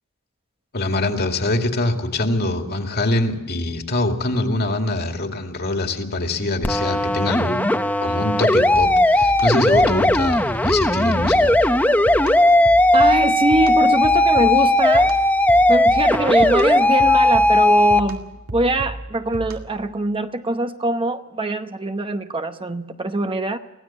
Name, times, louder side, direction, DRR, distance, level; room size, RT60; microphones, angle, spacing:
voice 1, 0.7-7.6 8.0-11.7, left 2 dB, 50° left, 4 dB, 2.3 m, -24 dB
sound 1, 6.6-18.0, left 1 dB, 5° left, 0.8 m, -17 dB
sound 2, 8.7-19.9, right 1 dB, 85° right, 2.3 m, -34 dB
voice 2, 12.9-15.1 15.7-23.6, right 2 dB, 25° right, 8 dB, 0.8 m, -23 dB
24.5 x 16.5 x 7.2 m, 1.0 s
head